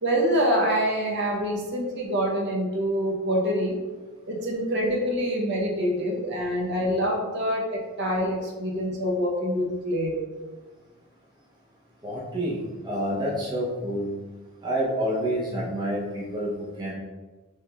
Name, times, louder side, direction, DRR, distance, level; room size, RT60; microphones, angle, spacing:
voice 1, 0.0-3.8 4.3-10.2, equal, 55° right, -1 dB, 0.8 m, -26 dB
voice 2, 12.0-14.1 14.6-16.9, equal, 20° right, -5 dB, 0.7 m, -28 dB
6.2 x 3.0 x 2.3 m, 1.3 s
head